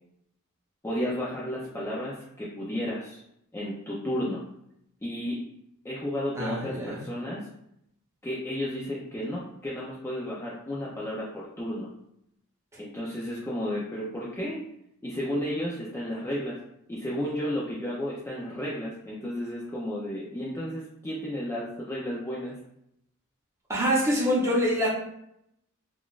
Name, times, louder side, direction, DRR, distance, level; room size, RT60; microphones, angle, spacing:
voice 1, 0.8-3.2 3.5-4.4 5.0-5.4 5.8-7.4 8.2-11.9 12.8-14.6 15.0-16.6 16.9-22.6, equal, 10° left, -6 dB, 0.4 m, -33 dB
voice 2, 6.4-7.0 23.7-24.9, equal, 15° right, -5 dB, 0.7 m, -25 dB
3.6 x 2.3 x 2.3 m, 0.76 s
head